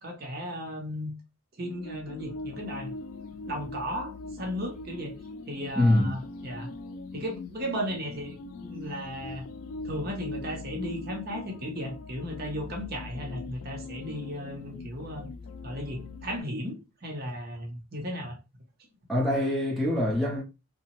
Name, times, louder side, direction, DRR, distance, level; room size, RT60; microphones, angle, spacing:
voice 1, 0.0-1.1 1.6-2.9 3.4-5.1 5.5-6.7 7.1-9.4 9.8-15.3 15.6-18.4, equal, 45° right, 0.7 m, -35 dB
sound 1, 1.6-16.4, left 3 dB, 80° left, 0.4 m, -41 dB
voice 2, 5.8-6.2 19.1-20.4, left 1 dB, ahead, 0.7 m, -24 dB
2.8 x 2.1 x 2.9 m
head